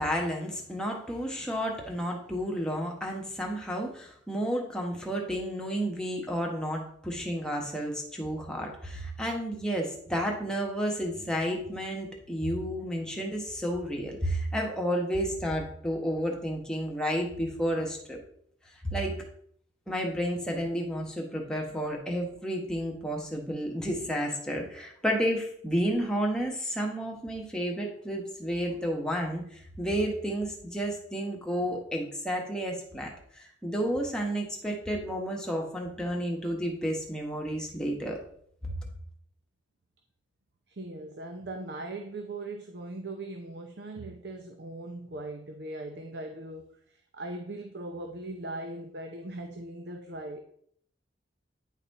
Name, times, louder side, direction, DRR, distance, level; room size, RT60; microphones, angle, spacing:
voice 1, 0.0-18.2 18.8-19.2 19.9-38.2 38.6-38.7, equal, 5° left, 0 dB, 1.2 m, -31 dB
voice 2, 40.7-50.4, right 2 dB, 60° right, 5 dB, 0.7 m, -39 dB
9.9 x 4.1 x 4.1 m, 0.63 s
head